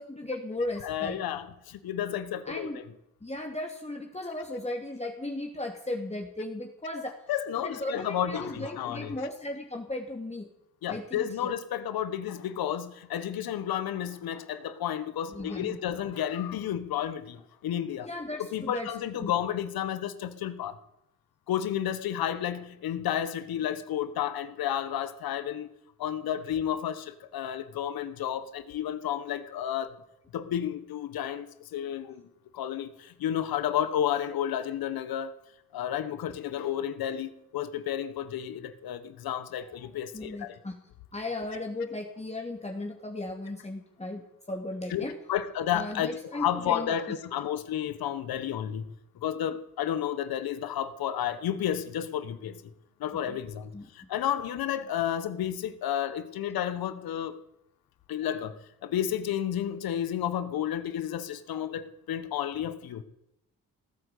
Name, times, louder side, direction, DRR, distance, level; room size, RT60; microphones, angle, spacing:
voice 1, 0.0-1.2 2.4-2.8 3.2-7.2 7.6-10.5 10.9-11.5 15.3-15.9 18.0-18.9 19.2-19.3 40.1-40.8 41.1-45.1 45.7-46.9 53.3-53.4 53.7-54.1, left 2 dB, 20° left, 2 dB, 2.7 m, -36 dB
voice 2, 0.8-2.8 7.3-9.2 10.8-18.1 18.4-20.8 21.5-25.7 26.0-29.9 30.3-32.2 32.5-35.3 35.7-40.6 44.9-48.8 49.1-52.6 53.0-57.4 58.1-63.0, left 10 dB, 80° left, 13 dB, 1.4 m, -31 dB
18.0 x 9.3 x 8.5 m, 0.81 s
supercardioid pair, 55°, 36 cm